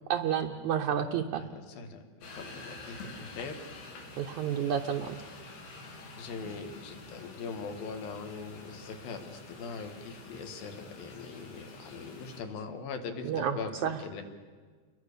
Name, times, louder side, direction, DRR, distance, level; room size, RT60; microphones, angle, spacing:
voice 1, 0.1-1.4 4.2-5.2 6.4-6.5 13.2-13.6 13.8-14.0, right 9 dB, 70° right, 4 dB, 1.8 m, -30 dB
voice 2, 1.4-3.6 6.2-14.2, left 5 dB, 70° left, 6 dB, 3.6 m, -41 dB
sound 1, 2.2-12.4, left 2 dB, 85° left, 5.3 m, -48 dB
29.5 x 22.5 x 6.9 m, 1.5 s
omnidirectional pair, 4.4 m